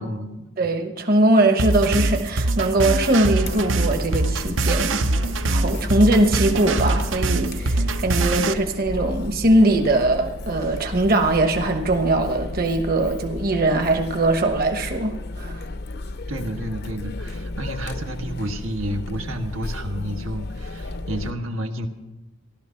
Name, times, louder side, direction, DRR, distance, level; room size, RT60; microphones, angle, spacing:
voice 1, 0.0-0.5 5.9-6.1 16.3-21.9, equal, 85° right, 4 dB, 1.5 m, -30 dB
voice 2, 0.6-5.0 5.5-15.7, right 2 dB, 45° right, 4 dB, 1.1 m, -21 dB
sound 1, 1.6-8.5, right 2 dB, 70° right, 0.7 m, -23 dB
Chatter, 3.4-21.3, left 2 dB, 50° left, 0.6 m, -33 dB
15.5 x 12.0 x 5.8 m, 1.0 s
head